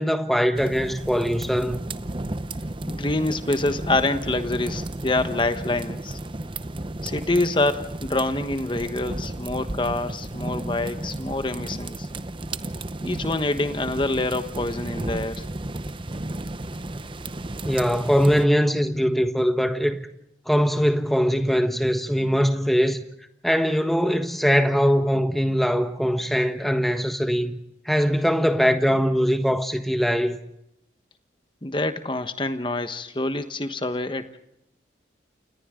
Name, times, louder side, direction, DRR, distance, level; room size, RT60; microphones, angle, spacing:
voice 1, 0.0-1.8 17.6-20.0 20.5-23.0 23.4-27.5 27.8-30.4, equal, ahead, 1.4 m, -21 dB
sound 1, 0.5-18.5, right 1 dB, 25° right, 0.8 m, -33 dB
voice 2, 2.9-6.2 7.0-12.1 13.0-15.5 31.6-34.4, left 2 dB, 25° left, 1.2 m, -26 dB
29.0 x 28.5 x 3.8 m
head